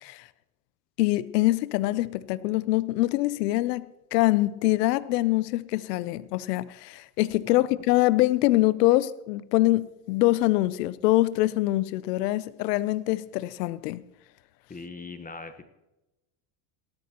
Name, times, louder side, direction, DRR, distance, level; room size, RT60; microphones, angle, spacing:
voice 1, 1.0-14.0, left 17 dB, 85° left, 0.7 m, -24 dB
voice 2, 14.7-15.6, left 4 dB, 15° left, 1.2 m, -41 dB
18.0 x 13.5 x 2.9 m
supercardioid pair, 95°, 47 cm